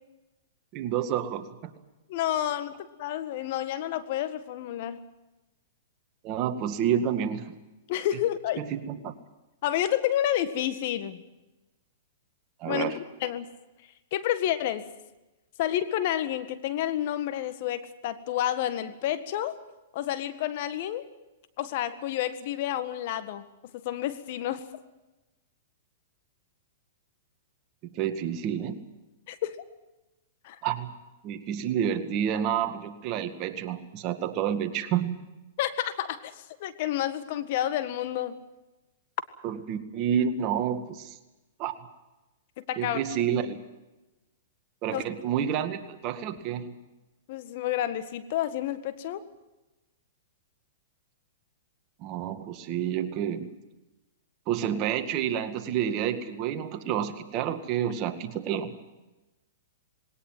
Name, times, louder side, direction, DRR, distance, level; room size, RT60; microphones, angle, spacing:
voice 1, 0.7-1.7 6.2-7.5 8.6-9.1 12.6-13.0 27.8-28.8 30.6-30.9 31.2-35.3 39.4-41.2 41.6-41.7 42.8-43.6 44.8-46.8 52.0-53.5 54.5-58.7, right 9 dB, 40° right, 8 dB, 2.0 m, -29 dB
voice 2, 2.1-5.0 7.9-8.6 9.6-11.2 12.7-13.5 14.1-14.9 15.6-19.6 19.9-21.1 21.6-23.4 23.7-24.7 29.3-29.6 30.4-30.6 35.6-38.4 42.6-43.2 44.9-45.0 47.3-49.2, left 12 dB, 55° left, 12 dB, 1.7 m, -30 dB
20.0 x 18.5 x 9.3 m, 1.0 s
hypercardioid pair, 130°, 0 cm